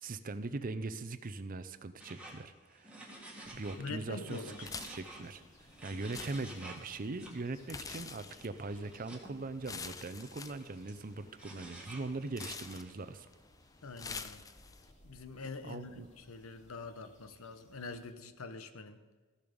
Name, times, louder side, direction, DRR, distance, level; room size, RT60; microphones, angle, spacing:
voice 1, 0.0-2.9 3.5-5.4 5.8-13.3 15.7-16.1, right 3 dB, 40° right, 12 dB, 0.5 m, -41 dB
sound 1, 2.0-3.9 4.2-7.3 8.2-9.3 9.8-13.1, right 1 dB, 5° right, 1.6 m, -51 dB
sound 2, 3.4-18.1, left 1 dB, 35° left, 2.2 m, -63 dB
voice 2, 3.8-4.7 5.9-6.0 13.8-14.4 15.0-19.0, left 3 dB, 75° left, 10 dB, 0.8 m, -45 dB
sound 3, 4.6-14.9, left 5 dB, 15° left, 0.4 m, -48 dB
14.5 x 7.0 x 5.1 m, 1.3 s
head